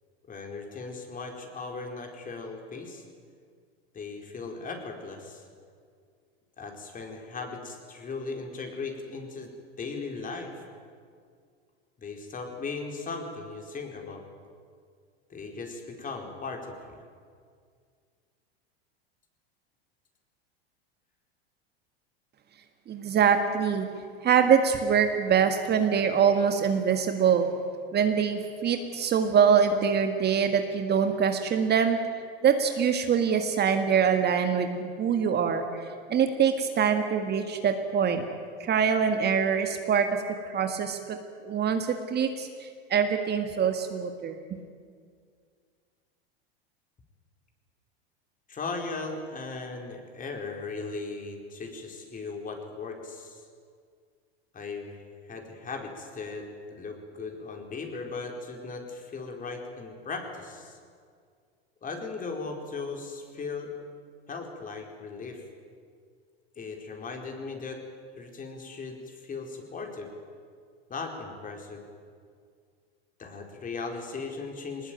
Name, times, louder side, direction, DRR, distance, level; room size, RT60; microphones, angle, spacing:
voice 1, 0.3-3.0 3.9-5.4 6.6-9.5 9.8-10.6 12.0-14.2 15.3-17.0 48.5-53.4 54.5-60.8 61.8-63.7 64.3-65.4 66.6-67.8 68.2-70.1 70.9-71.8 73.2-74.9, left 4 dB, 25° left, 3 dB, 4.5 m, -38 dB
voice 2, 22.9-23.9 24.2-27.5 27.9-32.0 32.4-35.8 36.1-38.2 38.6-41.2 41.4-44.4, right 7 dB, 30° right, 6 dB, 1.8 m, -24 dB
21.5 x 19.5 x 9.3 m, 2.1 s
hypercardioid pair, 105°, 31 cm